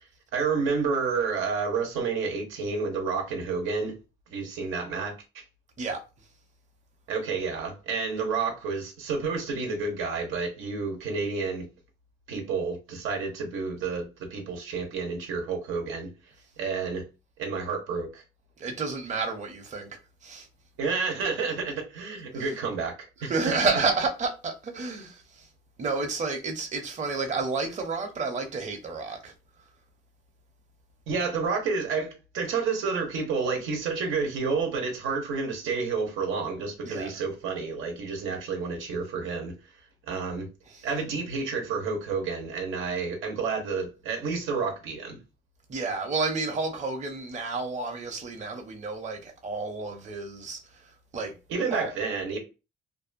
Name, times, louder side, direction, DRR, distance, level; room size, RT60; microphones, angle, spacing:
voice 1, 0.3-4.0 4.3-5.4 7.1-11.7 12.3-16.1 16.6-17.0 17.4-18.2 20.8-22.9 23.2-23.3 31.1-39.5 40.1-40.5 40.8-45.2 51.5-52.4, right 4 dB, 90° right, 0.8 m, -30 dB
voice 2, 18.6-19.9 20.2-20.5 21.2-21.3 22.3-22.5 23.2-25.5 25.8-29.3 36.8-37.1 40.7-40.9 45.7-51.3 51.7-51.9, right 4 dB, 35° right, 0.7 m, -30 dB
2.6 x 2.2 x 2.5 m
cardioid pair, 90°, 20 cm